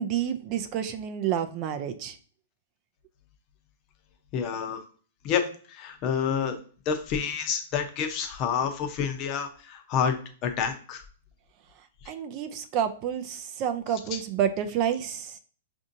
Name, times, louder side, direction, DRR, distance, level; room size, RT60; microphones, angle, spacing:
voice 1, 0.0-2.2 12.1-15.4, right 9 dB, 35° right, 8 dB, 0.4 m, -29 dB
voice 2, 4.3-4.8 5.2-6.5 6.9-10.2 10.4-11.0 14.1-14.2, left 7 dB, 35° left, 6 dB, 0.7 m, -28 dB
4.9 x 2.6 x 2.7 m, 0.41 s
hypercardioid pair, 140°, 0 cm